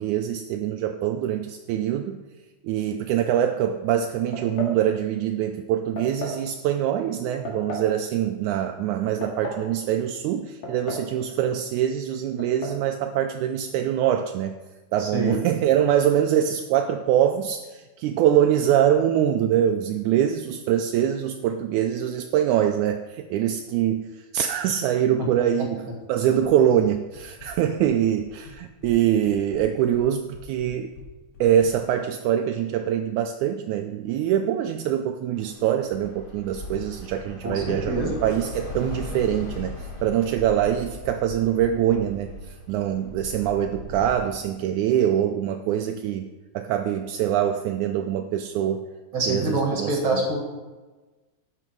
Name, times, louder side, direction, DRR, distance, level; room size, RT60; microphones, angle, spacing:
voice 1, 0.0-2.2 2.6-14.6 14.9-30.9 31.4-48.9 49.3-50.2, right 10 dB, 80° right, 6 dB, 1.9 m, -24 dB
Golpe casco, 4.3-4.8 6.0-6.4 7.5-7.9 9.0-9.7 10.6-11.2 11.4-11.5 12.4-12.8, left 1 dB, 65° left, 3.0 m, -33 dB
voice 2, 15.0-15.4 37.4-38.2 49.1-50.4, right 2 dB, 45° right, 1 dB, 2.3 m, -25 dB
sound 1, 26.4-26.9 27.1-27.9 28.2-29.0 29.2-31.7, left 4 dB, 90° left, 3.4 m, -45 dB
Bus / Traffic noise roadway noise, 35.4-44.1, left 1 dB, 35° left, 0.8 m, -38 dB
12.5 x 9.1 x 4.6 m, 1.2 s
omnidirectional pair, 3.5 m